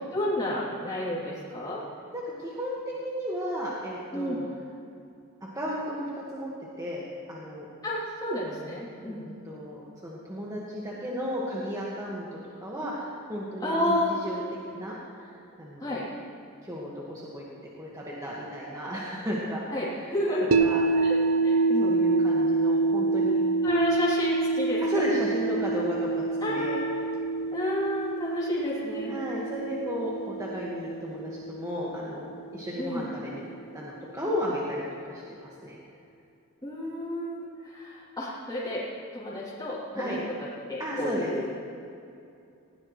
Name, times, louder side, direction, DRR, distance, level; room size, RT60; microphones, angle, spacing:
voice 1, 0.0-1.8 4.1-4.4 7.8-9.3 13.6-14.2 15.8-16.0 19.7-20.5 21.0-21.2 21.4-22.0 23.6-24.8 26.4-27.0 27.5-29.1 32.8-33.1 36.6-38.8 39.1-41.5, left 1 dB, 20° left, -9 dB, 3.2 m, -31 dB
voice 2, 2.1-4.4 5.4-6.5 6.8-7.0 7.3-7.6 9.2-14.4 14.7-16.0 16.6-17.4 17.8-20.1 20.6-20.8 21.8-23.4 24.8-26.8 29.1-33.4 33.7-35.8 39.9-40.2 40.8-41.3, equal, 15° right, -6 dB, 1.7 m, -34 dB
sound 1, 20.5-32.6, right 3 dB, 75° right, 0.7 m, -27 dB
20.0 x 17.0 x 3.2 m, 2.6 s
head